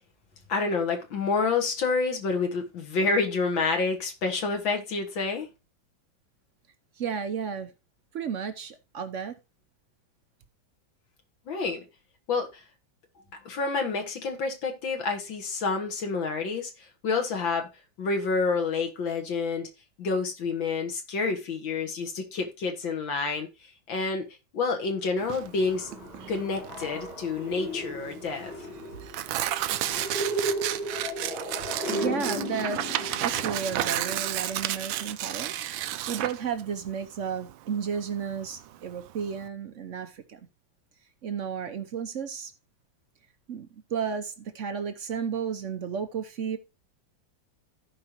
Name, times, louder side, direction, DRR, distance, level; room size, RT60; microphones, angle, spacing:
voice 1, 0.5-5.5 11.5-11.8 12.3-12.6 13.3-17.7 18.0-19.7 20.0-23.5 23.9-24.3 24.5-25.9 26.3-28.7, left 4 dB, 75° left, 2.3 m, -28 dB
voice 2, 7.0-7.7 8.1-9.3 31.4-31.6 31.9-32.9 33.2-35.5 35.8-40.4 41.2-42.5 43.5-46.6, right 7 dB, 65° right, 0.7 m, -33 dB
Tearing, 25.2-39.5, right 13 dB, 80° right, 1.4 m, -33 dB
sound 1, 25.3-35.1, equal, 90° left, 4.5 m, -35 dB
15.0 x 5.1 x 2.9 m
omnidirectional pair, 2.2 m